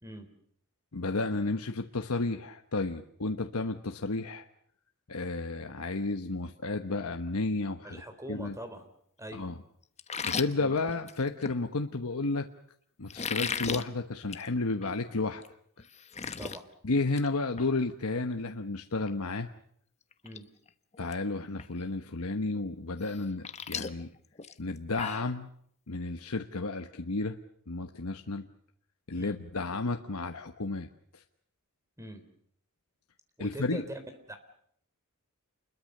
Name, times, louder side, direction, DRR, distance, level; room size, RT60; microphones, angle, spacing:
voice 1, 0.9-4.5 5.1-8.0 8.3-8.6 9.3-9.6 10.2-12.5 13.0-15.4 16.8-19.5 21.0-24.1 24.6-25.5 25.9-27.4 27.7-28.4 29.1-30.9 31.1-31.2 33.4-33.8, left 3 dB, 70° left, 6 dB, 1.2 m, -32 dB
voice 2, 7.8-8.9 9.2-9.4 10.6-10.7 16.4-16.6 20.2-20.4 29.1-29.4 32.0-32.2 33.4-34.0 34.3-34.4, right 1 dB, 15° right, 9 dB, 3.5 m, -42 dB
sound 1, 10.0-11.6 13.1-13.8 14.2-14.5 14.8-14.9 15.4-15.5 15.8-16.6 17.0-17.3 17.6-17.7 19.5-19.6 20.1-20.4 20.7-21.1 21.6-21.7 23.0-25.3, left 6 dB, 30° left, 1.1 m, -36 dB
28.5 x 22.0 x 6.7 m, 0.67 s
head